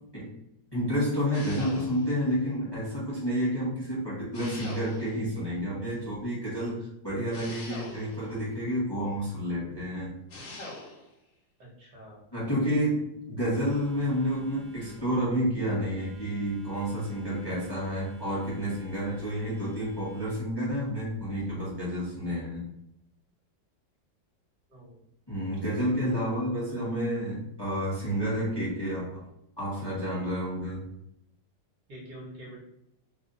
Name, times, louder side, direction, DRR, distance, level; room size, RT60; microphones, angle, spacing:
voice 1, 0.7-10.1 12.3-22.6 25.3-29.2 29.6-30.9, equal, 15° left, -8 dB, 1.1 m, -30 dB
sound 1, 1.3-2.2 4.3-5.3 7.3-8.4 10.3-11.1, left 2 dB, 70° left, 1.9 m, -43 dB
voice 2, 11.6-12.2 24.7-25.0 25.9-26.5 30.6-30.8 31.9-32.6, equal, 55° right, -4 dB, 1.7 m, -47 dB
Telephone, 13.5-21.8, left 2 dB, 80° right, 1.4 m, -51 dB
4.0 x 2.6 x 3.9 m, 0.82 s
omnidirectional pair, 2.2 m